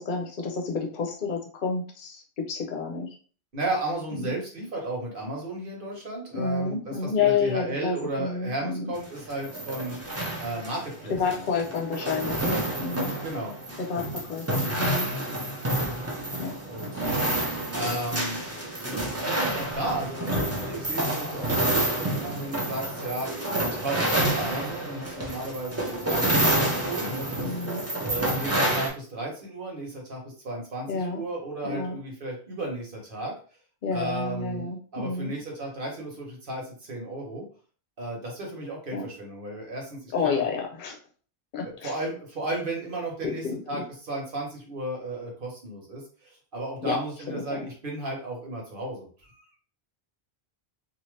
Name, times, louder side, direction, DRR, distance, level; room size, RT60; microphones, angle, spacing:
voice 1, 0.0-3.1 4.1-4.4 6.3-8.9 11.1-13.1 13.8-15.1 16.4-16.5 27.4-27.8 30.9-31.2 31.6-32.0 33.8-35.3 38.9-39.0 40.1-41.0 41.5-41.9 43.2-43.6 46.8-47.0 47.3-47.6, left 5 dB, 55° left, 2 dB, 0.8 m, -30 dB
voice 2, 3.5-10.0 10.4-11.8 13.2-13.5 16.2-17.1 17.7-18.4 19.2-27.5 28.0-33.3 33.9-37.4 38.0-40.4 41.6-49.5, right 1 dB, 60° right, -1 dB, 1.3 m, -34 dB
sound 1, 9.0-28.9, right 1 dB, 15° right, 0.6 m, -28 dB
2.8 x 2.5 x 3.2 m, 0.41 s
omnidirectional pair, 1.1 m